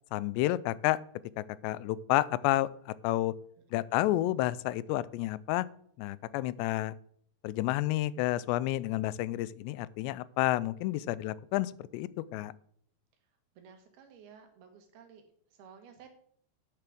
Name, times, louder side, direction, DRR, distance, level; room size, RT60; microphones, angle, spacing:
voice 1, 0.1-1.0 1.4-3.3 3.7-5.7 6.0-7.0 7.4-12.5, left 16 dB, 90° left, 19 dB, 2.7 m, -30 dB
voice 2, 13.6-15.2 15.5-16.1, right 7 dB, 70° right, 6 dB, 3.2 m, -54 dB
10.0 x 7.0 x 6.1 m, 0.62 s
omnidirectional pair, 4.9 m